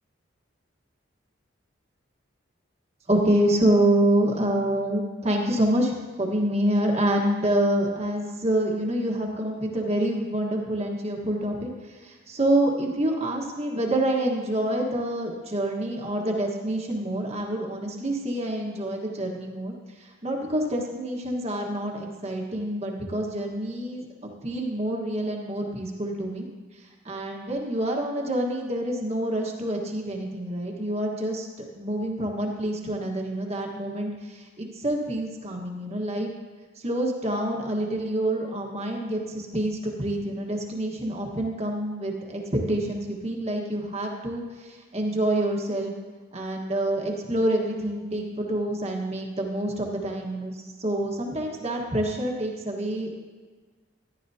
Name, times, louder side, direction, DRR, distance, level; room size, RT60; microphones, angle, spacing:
voice 1, 3.1-11.7 12.0-19.7 20.2-26.5 27.0-31.5 31.7-36.3 36.8-44.4 44.9-45.9 46.3-50.5 50.8-53.2, right 1 dB, 35° right, 0 dB, 1.4 m, -27 dB
14.5 x 11.0 x 2.8 m, 1.4 s
head